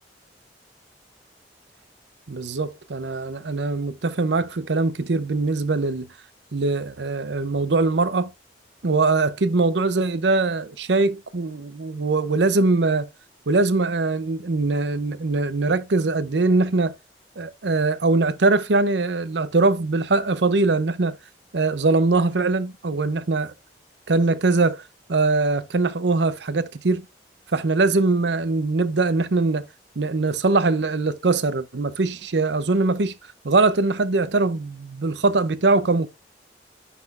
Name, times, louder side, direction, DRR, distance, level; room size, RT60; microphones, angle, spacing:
voice 1, 2.3-6.1 6.5-8.3 8.8-13.1 13.5-16.9 17.4-21.2 21.5-23.5 24.1-24.8 25.1-27.1 27.5-29.7 30.0-33.1 33.4-36.1, right 3 dB, 85° right, 0.7 m, -22 dB
10.0 x 4.2 x 2.5 m
head